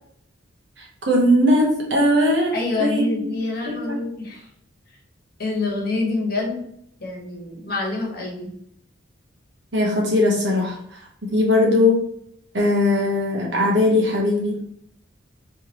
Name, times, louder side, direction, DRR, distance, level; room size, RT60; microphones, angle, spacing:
voice 1, 0.8-3.3 3.6-4.0 9.7-10.8 11.2-12.1 12.5-14.6, left 1 dB, 60° right, -1 dB, 1.2 m, -19 dB
voice 2, 2.5-4.4 5.4-6.6 7.0-8.5, left 3 dB, 50° left, -2 dB, 1.3 m, -26 dB
3.4 x 3.4 x 3.0 m, 0.69 s
head